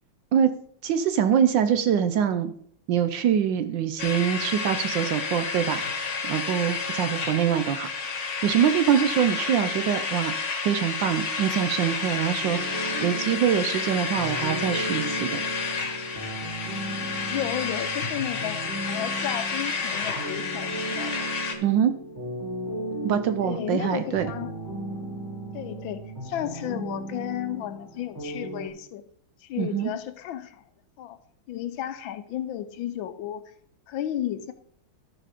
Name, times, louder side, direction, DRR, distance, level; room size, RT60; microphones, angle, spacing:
voice 1, 0.8-2.5 2.9-5.8 6.2-7.9 8.4-15.4 21.6-21.9 23.0-24.3 29.6-29.9, right 9 dB, 70° right, 10 dB, 1.1 m, -24 dB
sound 1, 4.0-21.5, left 5 dB, 40° left, 1.3 m, -30 dB
sound 2, 12.4-28.7, right 1 dB, 10° right, 1.4 m, -36 dB
voice 2, 17.3-18.6 18.9-21.3 23.4-24.5 25.5-29.0 29.4-30.6 31.0-31.2 31.5-33.4 33.9-34.5, left 11 dB, 75° left, 11 dB, 1.3 m, -33 dB
13.0 x 5.0 x 5.0 m, 0.63 s
omnidirectional pair, 2.4 m